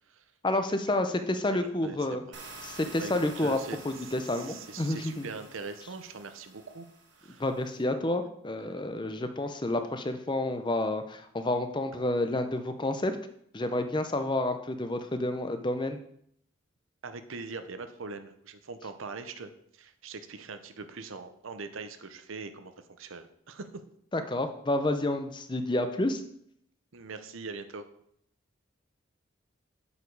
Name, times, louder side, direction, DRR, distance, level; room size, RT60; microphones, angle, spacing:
voice 1, 0.4-2.2 2.6-3.6 3.8-5.3 7.4-13.1 13.5-16.0 24.1-26.2, left 1 dB, 25° left, 8 dB, 0.5 m, -29 dB
voice 2, 1.5-2.0 2.6-6.9 7.2-7.4 17.0-22.7 23.0-23.7 26.9-27.9, right 4 dB, 80° right, 9 dB, 0.7 m, -42 dB
sound 1, 2.3-7.8, right 3 dB, 65° right, 1.3 m, -49 dB
8.2 x 5.0 x 4.7 m, 0.69 s
head